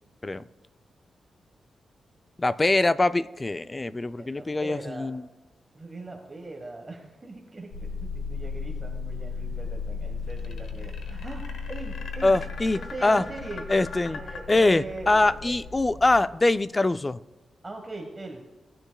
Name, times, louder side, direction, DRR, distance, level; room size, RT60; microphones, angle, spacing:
voice 1, 2.4-5.3 12.2-13.2 13.7-14.2 14.5-17.2, left 2 dB, 20° left, 14 dB, 0.3 m, -23 dB
voice 2, 4.2-5.1 5.7-12.3 12.7-13.6 14.1-15.6 17.6-18.4, right 2 dB, 25° right, 2 dB, 1.2 m, -40 dB
sound 1, 7.7-16.6, left 5 dB, 60° left, 1.6 m, -36 dB
sound 2, 10.3-15.3, left 5 dB, 85° left, 1.1 m, -41 dB
18.0 x 9.9 x 2.2 m, 1.1 s
wide cardioid pair, 120°, 0 cm